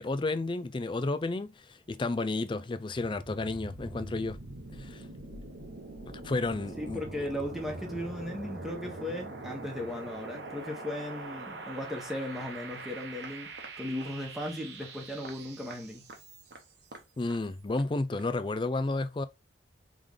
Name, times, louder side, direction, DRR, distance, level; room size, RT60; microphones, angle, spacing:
voice 1, 0.0-4.4 4.8-5.1 6.2-7.0 17.2-19.3, left 2 dB, 30° left, 0.4 m, -32 dB
sound 1, 2.9-16.7, right 2 dB, 85° right, 1.0 m, -43 dB
voice 2, 6.8-13.5 13.8-16.1, left 1 dB, ahead, 1.1 m, -37 dB
sound 2, 12.4-12.5 12.8-12.9 13.2-13.7 14.0-14.1 14.4-14.5 14.8-14.9 15.2-15.4 15.7-15.8 16.1-16.2 16.5-17.1 17.3-17.4 17.7-17.9 18.1-18.3 18.6-18.7, right 2 dB, 70° right, 1.0 m, -48 dB
3.7 x 3.2 x 3.7 m
head